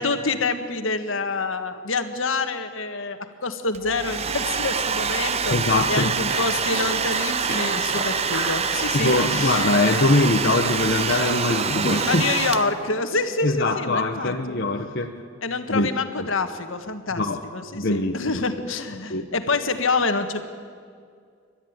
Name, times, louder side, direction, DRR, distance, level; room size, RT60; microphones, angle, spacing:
voice 1, 0.0-5.5 5.9-9.6 12.1-14.6 15.4-17.2 17.5-20.4, left 3 dB, 75° left, 7 dB, 1.7 m, -27 dB
Domestic sounds home sounds, 3.7-13.0, right 6 dB, 30° right, 0.7 m, -26 dB
voice 2, 5.5-6.1 8.9-12.2 13.4-15.2 15.7-15.9 16.2-16.3 17.2-17.4 17.7-18.2 19.1-19.3, left 2 dB, 55° left, 2 dB, 1.1 m, -22 dB
sound 1, 6.2-12.3, right 1 dB, 55° right, 6.7 m, -33 dB
29.5 x 13.0 x 9.7 m, 2.2 s
head